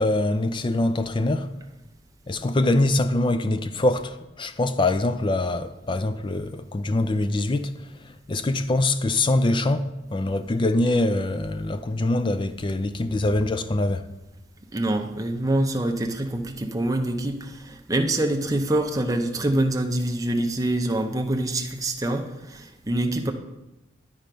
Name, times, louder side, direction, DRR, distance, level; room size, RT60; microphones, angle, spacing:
voice 1, 0.0-1.5 2.3-14.1, left 2 dB, 25° left, 0.4 m, -24 dB
voice 2, 14.7-23.3, right 1 dB, 15° right, 0.6 m, -25 dB
11.0 x 4.4 x 5.2 m
head